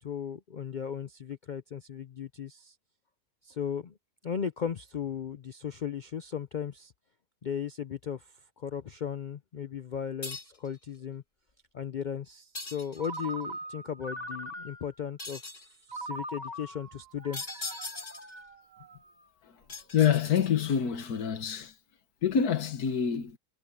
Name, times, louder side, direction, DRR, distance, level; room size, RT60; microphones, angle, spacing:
voice 1, 0.0-2.7 3.4-4.0 4.2-6.9 7.4-11.2 11.7-15.4 15.9-17.7, left 8 dB, 70° left, 0.4 m, -36 dB
sound 1, 10.2-10.7 12.5-13.3 15.2-15.7 17.3-18.4 19.7-20.7, left 3 dB, 35° left, 2.8 m, -40 dB
Ringtone, 13.0-15.1 15.9-19.2, right 1 dB, 25° right, 2.4 m, -41 dB
voice 2, 19.9-21.7 22.2-23.4, left 8 dB, 90° left, 1.7 m, -26 dB
omnidirectional pair, 1.6 m